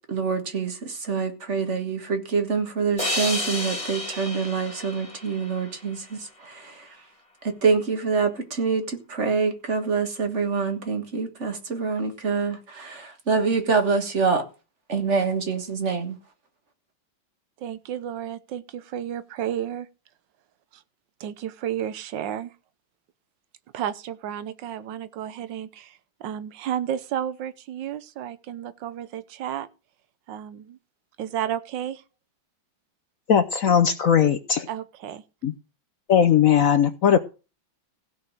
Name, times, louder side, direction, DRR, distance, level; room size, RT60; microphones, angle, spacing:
voice 1, 0.1-7.0 7.4-14.5 14.9-16.2, right 5 dB, 40° right, 1.7 m, -26 dB
sound 1, 3.0-6.3, left 1 dB, 15° left, 2.0 m, -31 dB
voice 2, 17.6-19.9 20.7-20.8 21.2-22.5 23.7-29.7 30.3-30.8 31.2-32.0 34.7-35.2, right 10 dB, 70° right, 1.5 m, -32 dB
voice 3, 33.3-34.7 35.4-35.5 36.1-37.2, left 8 dB, 65° left, 0.8 m, -19 dB
16.0 x 5.6 x 6.5 m
omnidirectional pair, 2.2 m